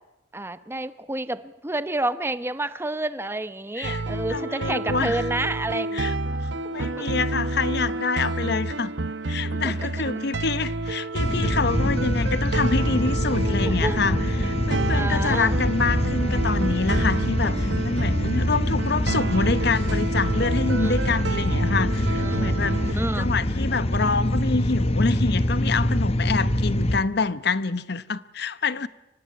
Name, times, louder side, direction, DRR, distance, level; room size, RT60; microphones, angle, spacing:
voice 1, 0.3-6.1 6.8-7.1 9.5-9.7 13.3-14.2 14.9-15.6 20.8-21.0 22.2-23.2, right 2 dB, 15° right, 0.9 m, -30 dB
sound 1, 3.8-22.9, right 2 dB, 70° right, 1.0 m, -29 dB
voice 2, 4.3-5.2 5.9-8.9 9.3-28.9, left 4 dB, 60° left, 0.9 m, -27 dB
sound 2, 11.2-27.0, left 1 dB, 35° left, 1.1 m, -25 dB
24.5 x 18.0 x 9.6 m
head